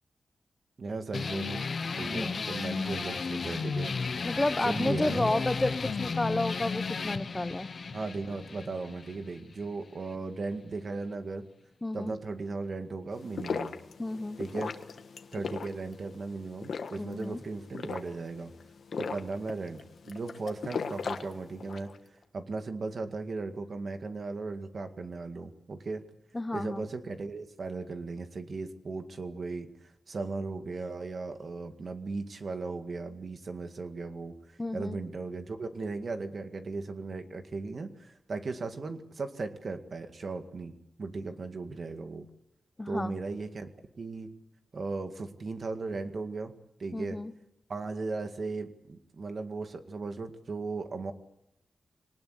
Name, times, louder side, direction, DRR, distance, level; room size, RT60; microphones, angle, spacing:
voice 1, 0.8-1.6 2.0-3.9 4.6-5.5 7.9-11.4 11.9-13.7 14.4-14.7 15.3-18.5 19.0-21.9 22.3-26.0 26.5-29.7 30.1-40.7 41.0-42.3 42.9-43.7 44.0-44.3 44.7-47.2 47.7-51.1, right 3 dB, 55° right, 7 dB, 2.0 m, -37 dB
sound 1, 1.1-10.2, left 4 dB, 60° left, 1.0 m, -34 dB
voice 2, 4.2-7.7 11.8-12.1 14.0-14.4 17.0-17.4 26.3-26.8 34.6-35.0 42.8-43.1 46.9-47.3, left 2 dB, 20° left, 13 dB, 0.9 m, -31 dB
sound 2, 13.1-22.0, left 5 dB, 80° left, 1.5 m, -38 dB
23.0 x 19.0 x 8.2 m, 0.83 s
wide cardioid pair, 100°, 0 cm